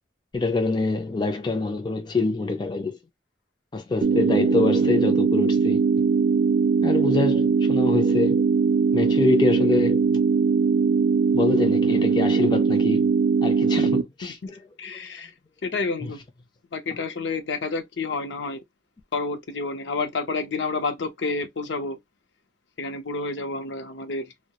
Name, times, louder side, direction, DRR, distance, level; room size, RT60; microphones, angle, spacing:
voice 1, 0.3-3.0 3.7-6.0 6.8-8.4 8.9-10.0 11.3-13.1 13.4-14.4 16.0-16.1, left 3 dB, 25° left, 0.3 m, -25 dB
sound 1, 4.0-14.0, right 5 dB, 75° right, 0.3 m, -20 dB
voice 2, 14.2-15.3 15.6-16.2 16.7-18.6 19.1-22.0 22.8-24.3, left 3 dB, 70° left, 0.5 m, -29 dB
2.2 x 2.0 x 2.8 m
head